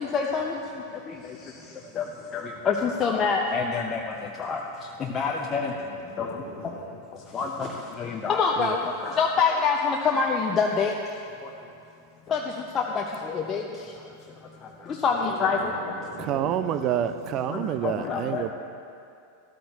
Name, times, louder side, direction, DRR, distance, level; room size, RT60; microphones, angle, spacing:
voice 1, 0.1-0.5 2.0-2.1 2.3-4.0 4.4-4.6 5.1-5.7 6.2-6.3 7.3-7.7 8.0-8.8 9.0-10.9 12.3-12.4 12.7-13.0 13.3-13.6 15.0-15.6 17.8-18.4, left 5 dB, 25° left, 0 dB, 0.7 m, -25 dB
voice 2, 2.5-2.9 5.5-6.9 15.0-17.1, right 2 dB, 60° right, -9 dB, 2.9 m, -42 dB
voice 3, 16.2-18.5, right 10 dB, 35° right, 11 dB, 0.5 m, -28 dB
13.5 x 12.5 x 2.8 m, 2.5 s
figure-of-eight pair, 90°, 0 cm